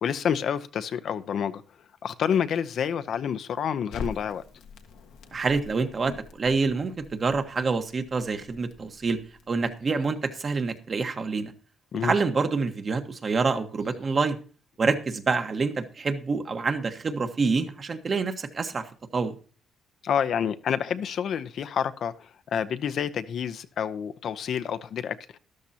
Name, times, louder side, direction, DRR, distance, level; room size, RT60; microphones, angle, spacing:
voice 1, 0.0-1.6 2.0-4.4 11.9-12.1 20.0-25.4, left 8 dB, 65° left, 0.7 m, -28 dB
Crackle, 3.9-10.0, left 4 dB, 85° left, 1.5 m, -44 dB
voice 2, 5.3-9.2 9.5-11.5 12.0-14.4 14.8-19.3, right 4 dB, 40° right, 1.3 m, -27 dB
13.0 x 12.0 x 2.8 m
cardioid pair, 90°, 0 cm